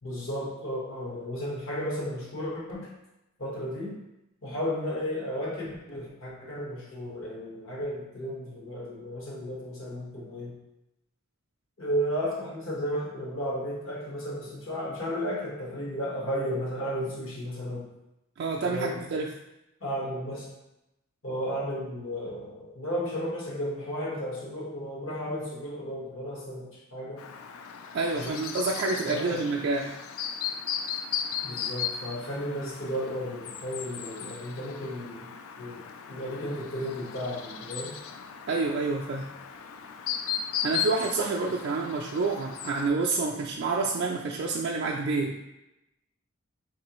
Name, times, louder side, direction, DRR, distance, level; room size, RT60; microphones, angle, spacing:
voice 1, 0.0-2.9 3.4-4.0 4.4-10.6 11.8-17.9 18.7-19.0 19.8-20.5 21.2-27.3 28.1-28.4 29.1-29.4 31.4-35.3 35.6-38.0, equal, 75° left, -4 dB, 1.3 m, -34 dB
voice 2, 18.4-19.3 27.9-29.9 38.5-39.3 40.6-45.4, right 3 dB, 55° right, -1 dB, 0.3 m, -28 dB
Chirp tweet, 27.2-42.9, left 8 dB, 90° left, 0.4 m, -36 dB
3.8 x 3.3 x 3.0 m, 0.91 s
head